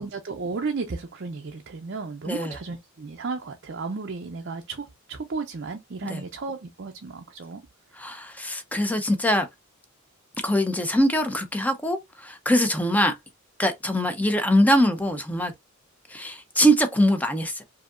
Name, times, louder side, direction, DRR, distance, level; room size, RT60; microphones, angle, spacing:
voice 1, 0.0-7.6, right 4 dB, 50° right, 0.5 m, -34 dB
voice 2, 8.0-9.5 10.4-13.1 13.6-15.5 16.1-17.6, equal, 5° left, 0.6 m, -23 dB
4.9 x 2.7 x 2.4 m
head